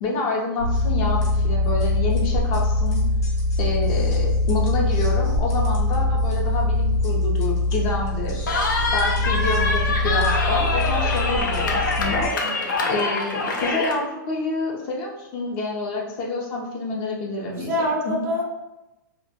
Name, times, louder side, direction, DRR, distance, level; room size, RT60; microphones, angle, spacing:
voice 1, 0.0-3.0 3.6-8.6 8.9-12.3 12.9-17.7 18.0-18.2, left 2 dB, 35° left, -2 dB, 0.5 m, -28 dB
sound 1, 0.6-12.3, left 2 dB, 60° left, 0.9 m, -23 dB
Cheering, 8.5-14.0, left 3 dB, 85° left, 0.5 m, -24 dB
voice 2, 12.5-12.9 17.5-18.4, left 1 dB, 20° right, -2 dB, 0.4 m, -26 dB
2.1 x 2.1 x 2.7 m, 0.96 s
hypercardioid pair, 150°, 10 cm